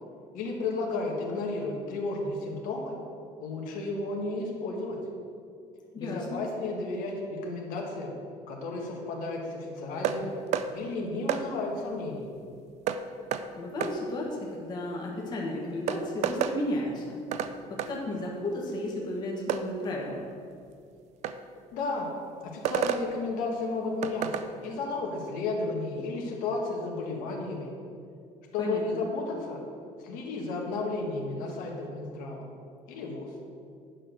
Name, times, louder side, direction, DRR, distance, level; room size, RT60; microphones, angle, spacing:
voice 1, 0.3-3.0 3.4-5.0 6.0-8.1 8.5-10.3 10.7-12.3 21.7-22.1 22.4-27.7 28.5-29.6 30.0-32.4 32.9-33.3, left 3 dB, 80° left, -1 dB, 1.8 m, -33 dB
voice 2, 5.9-6.4 13.5-17.2 17.7-20.2 28.6-29.0, left 1 dB, 30° left, -2 dB, 1.4 m, -33 dB
sound 1, 10.0-10.2 10.5-10.7 11.3-11.4 12.9-13.0 13.3-13.4 13.8-13.9 15.3-15.4 15.9-16.6 17.3-17.5 17.8-17.9 19.5-19.6 21.2-21.4 22.6-23.0 24.0-24.5, right 9 dB, 55° right, 0.5 m, -29 dB
9.7 x 5.2 x 6.4 m, 2.4 s
cardioid pair, 170°, 14 cm